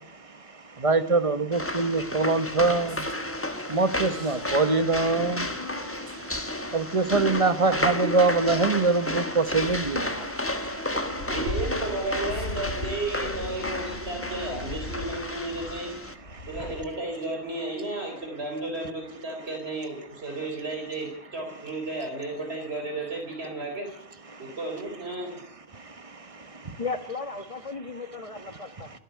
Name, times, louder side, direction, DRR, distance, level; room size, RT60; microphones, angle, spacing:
voice 1, 0.8-3.0 3.7-5.4 6.7-10.1, right 3 dB, 30° right, 11 dB, 1.2 m, -23 dB
sound 1, 1.5-16.1, left 1 dB, 10° left, 1.2 m, -32 dB
sound 2, 2.4-16.0, left 1 dB, 50° right, 3.3 m, -45 dB
sound 3, 9.5-16.9, left 1 dB, 80° left, 3.8 m, -38 dB
voice 2, 11.3-15.9 16.5-23.9 24.4-25.3, right 2 dB, 70° right, 2 dB, 4.2 m, -33 dB
voice 3, 26.8-28.9, left 4 dB, 35° left, 10 dB, 1.3 m, -35 dB
28.5 x 9.9 x 9.5 m, 0.69 s
omnidirectional pair, 1.1 m